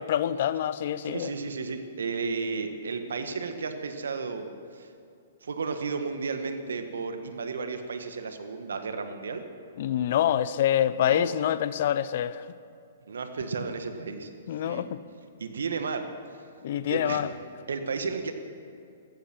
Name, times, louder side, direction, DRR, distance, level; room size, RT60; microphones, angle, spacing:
voice 1, 0.1-1.3 9.8-12.4 14.5-15.0 16.6-17.3, left 10 dB, 55° left, 0.7 m, -26 dB
voice 2, 1.0-4.9 5.4-9.4 10.9-11.3 13.1-14.3 14.6-14.9 15.4-16.1 16.9-17.2 17.7-18.3, right 4 dB, 75° right, 1.6 m, -33 dB
15.0 x 14.5 x 6.1 m
hypercardioid pair, 125°, 0 cm